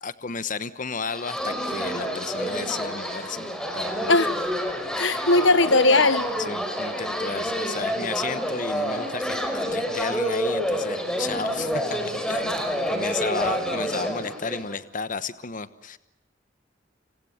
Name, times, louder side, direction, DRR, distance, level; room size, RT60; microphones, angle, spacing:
voice 1, 0.0-3.4 3.7-4.2 6.4-12.0 12.3-16.0, left 4 dB, 45° left, 1.1 m, -33 dB
sound 1, 1.1-14.8, equal, 5° left, 4.9 m, -28 dB
voice 2, 4.9-6.3, left 2 dB, 80° left, 1.3 m, -19 dB
29.5 x 28.0 x 7.3 m
head